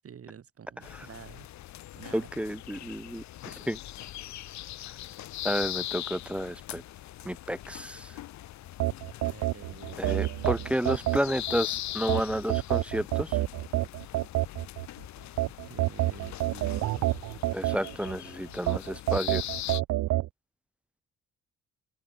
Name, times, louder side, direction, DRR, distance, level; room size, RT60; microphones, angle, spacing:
voice 1, 0.0-1.5 1.9-2.3 9.2-10.2 10.5-11.2 15.7-17.2, right 8 dB, 50° right, 3.0 m, -48 dB
sound 1, 0.8-19.8, left 14 dB, 70° left, 0.8 m, -41 dB
voice 2, 2.1-3.2 3.7-3.8 5.4-6.8 7.2-8.1 10.0-13.4 17.5-19.4, equal, 5° right, 0.5 m, -31 dB
sound 2, 8.8-11.6 12.1-14.9 15.4-18.2 18.7-20.3, right 16 dB, 80° right, 0.9 m, -28 dB
open air
cardioid pair, 90°, 30 cm